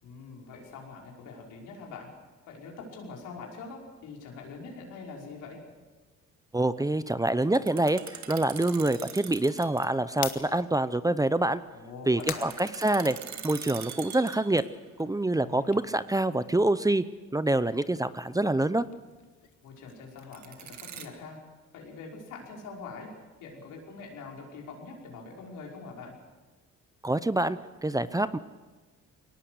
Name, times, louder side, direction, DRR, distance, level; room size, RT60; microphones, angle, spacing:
voice 1, 0.0-2.1 2.5-5.6 11.7-12.5 15.4-15.9 19.6-21.4 21.7-23.1 23.4-26.1, left 4 dB, 85° left, 0 dB, 5.6 m, -44 dB
voice 2, 6.5-11.6 12.1-13.2 13.4-14.6 15.0-17.0 17.3-18.8 27.0-28.4, right 2 dB, 10° right, 14 dB, 0.7 m, -26 dB
sound 1, 7.4-9.9 10.2-10.3 12.2-14.8 20.2-21.1, right 8 dB, 65° right, 2.0 m, -43 dB
sound 2, 10.1-13.5 13.9-16.9 17.2-21.3, left 10 dB, 70° left, 1.8 m, -45 dB
22.0 x 18.5 x 8.0 m, 1.3 s
cardioid pair, 90°, 30 cm